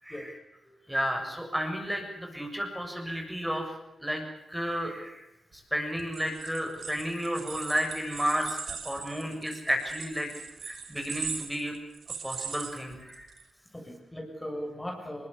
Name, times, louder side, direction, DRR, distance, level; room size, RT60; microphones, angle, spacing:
voice 1, 0.0-0.3 0.9-3.7 4.0-4.2 4.5-5.2 5.7-10.3 10.6-11.7 12.2-13.3, equal, 5° right, 2 dB, 7.2 m, -32 dB
voice 2, 0.6-1.0 13.7-15.3, equal, 15° left, 2 dB, 7.1 m, -39 dB
sound 1, 6.0-13.4, right 6 dB, 70° right, 3.5 m, -40 dB
21.5 x 20.5 x 8.3 m, 0.90 s
cardioid pair, 55°, 0 cm